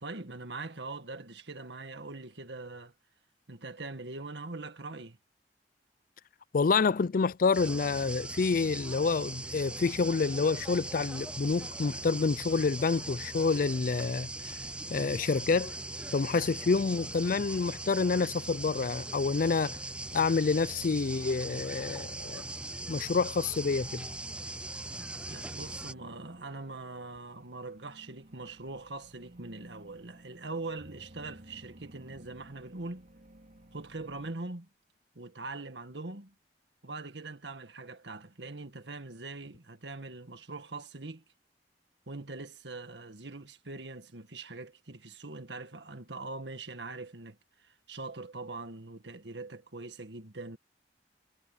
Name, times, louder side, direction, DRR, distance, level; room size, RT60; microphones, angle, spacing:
voice 1, 0.0-2.9 3.5-5.2 25.3-33.1 33.7-34.7 35.2-36.3 36.8-41.2 42.1-47.4 47.6-50.6, right 3 dB, 85° right, 1.8 m, -42 dB
voice 2, 6.5-14.5 14.9-15.7 16.1-19.8 20.1-22.4 22.9-24.1, left 4 dB, 50° left, 0.4 m, -28 dB
sound 1, 7.5-25.9, right 2 dB, 5° right, 0.4 m, -40 dB
sound 2, 18.8-34.3, right 1 dB, 50° right, 3.3 m, -57 dB
head